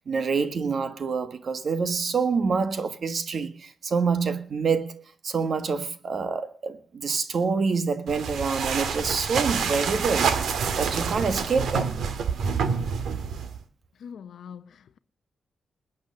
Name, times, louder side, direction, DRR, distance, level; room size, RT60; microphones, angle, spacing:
voice 1, 0.0-11.9, right 5 dB, 45° right, 1.5 m, -27 dB
sound 1, 8.1-13.6, right 6 dB, 85° right, 1.8 m, -27 dB
voice 2, 14.0-15.0, left 7 dB, 70° left, 0.8 m, -43 dB
20.5 x 9.0 x 6.6 m
wide cardioid pair, 170°, 0 cm